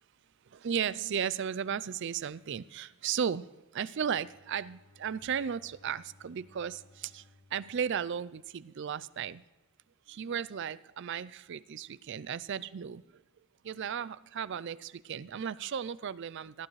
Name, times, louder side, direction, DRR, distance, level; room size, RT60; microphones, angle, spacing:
voice 1, 0.5-3.5 3.7-9.4 10.1-13.2 13.6-16.7, right 7 dB, 55° right, 18 dB, 0.4 m, -35 dB
Bowed string instrument, 3.9-8.9, left 2 dB, 25° left, 1.1 m, -62 dB
18.0 x 11.0 x 3.2 m, 1.1 s
head